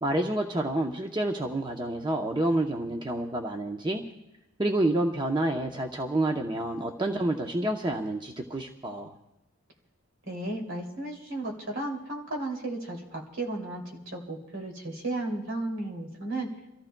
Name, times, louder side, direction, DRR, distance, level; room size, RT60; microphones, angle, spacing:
voice 1, 0.0-4.0 4.6-9.2, right 1 dB, 20° right, 2 dB, 0.7 m, -28 dB
voice 2, 10.3-16.5, right 2 dB, 65° right, 0 dB, 2.7 m, -34 dB
30.0 x 14.5 x 2.2 m, 0.93 s
head